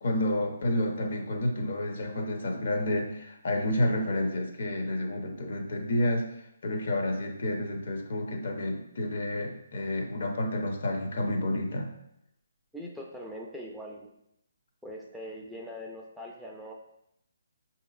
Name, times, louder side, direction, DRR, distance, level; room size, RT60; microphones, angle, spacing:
voice 1, 0.0-6.3 6.6-11.9, left 1 dB, 60° left, 2 dB, 0.7 m, -30 dB
voice 2, 12.7-14.1 14.8-16.7, equal, ahead, -3 dB, 0.3 m, -42 dB
4.9 x 2.8 x 2.4 m, 0.79 s
hypercardioid pair, 160°, 0 cm